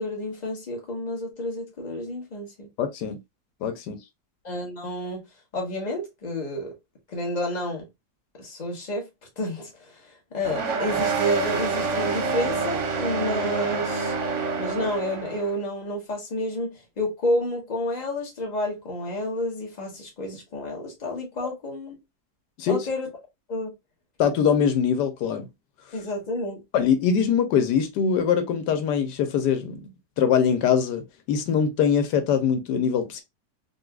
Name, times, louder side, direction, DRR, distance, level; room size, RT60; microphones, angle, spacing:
voice 1, 0.0-2.7 4.4-5.2 5.5-6.7 7.1-7.9 8.4-9.0 9.4-14.1 14.6-22.0 22.7-23.1 23.5-23.7 25.9-26.6, left 1 dB, 30° left, 1.2 m, -30 dB
voice 2, 2.8-3.2 3.6-4.0 22.6-22.9 24.2-25.5 26.7-29.9 30.2-33.2, left 7 dB, 85° left, 1.2 m, -23 dB
sound 1, 10.4-15.5, right 4 dB, 55° right, 1.0 m, -27 dB
3.9 x 2.6 x 2.3 m
omnidirectional pair, 1.8 m